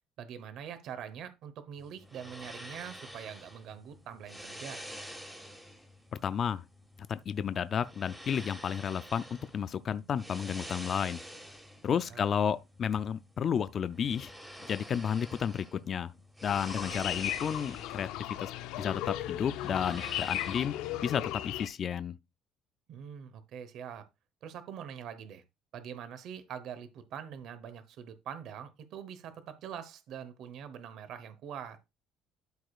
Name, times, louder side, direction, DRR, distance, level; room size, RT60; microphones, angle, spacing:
voice 1, 0.2-4.8 12.0-12.3 22.9-24.1 24.4-25.4 25.7-31.8, right 8 dB, 50° right, 1.0 m, -44 dB
sound 1, 1.8-20.7, equal, 5° right, 1.6 m, -48 dB
voice 2, 6.2-6.6 7.1-11.2 11.8-14.3 14.7-16.1 16.4-18.1 18.4-18.5 18.8-20.8 21.0-22.2, left 8 dB, 30° left, 0.3 m, -32 dB
sound 2, 16.4-21.7, left 14 dB, 75° left, 0.6 m, -36 dB
12.5 x 4.9 x 2.3 m
cardioid pair, 165°, 0 cm